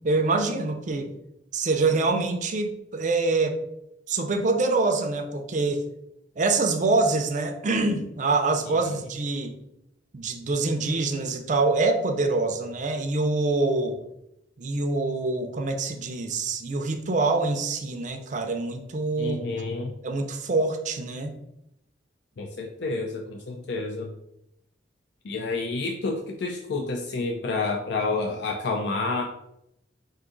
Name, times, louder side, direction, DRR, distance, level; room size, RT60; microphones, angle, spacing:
voice 1, 0.0-1.1 1.5-3.6 4.1-5.8 6.4-9.5 10.1-14.0 14.6-19.4 20.0-21.3, right 3 dB, 40° right, 5 dB, 0.5 m, -25 dB
voice 2, 8.7-9.1 19.2-19.9 22.4-24.1 25.2-29.2, left 3 dB, 60° left, 1 dB, 0.4 m, -29 dB
4.7 x 2.6 x 3.8 m, 0.82 s
head